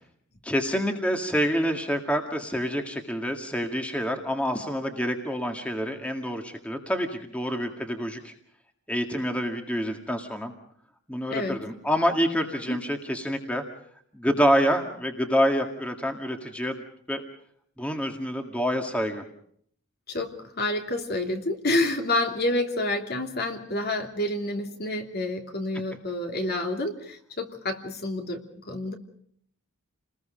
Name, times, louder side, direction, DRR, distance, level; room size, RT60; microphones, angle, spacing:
voice 1, 0.4-8.3 8.9-10.5 11.1-13.6 14.1-17.2 17.8-19.3, equal, 5° left, 4 dB, 1.9 m, -27 dB
voice 2, 20.1-28.9, left 2 dB, 45° left, 4 dB, 2.9 m, -28 dB
30.0 x 20.5 x 5.1 m, 0.64 s
head